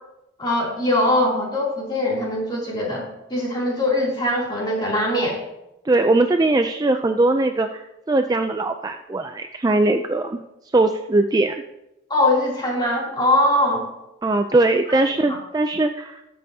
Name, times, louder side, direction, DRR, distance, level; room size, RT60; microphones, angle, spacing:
voice 1, 0.4-3.0 3.3-5.4 12.1-13.9 15.3-15.4, left 1 dB, 20° left, -4 dB, 2.9 m, -21 dB
voice 2, 5.8-10.4 10.7-11.6 14.2-16.2, right 2 dB, 20° right, 6 dB, 0.3 m, -20 dB
19.0 x 7.7 x 2.8 m, 0.90 s
head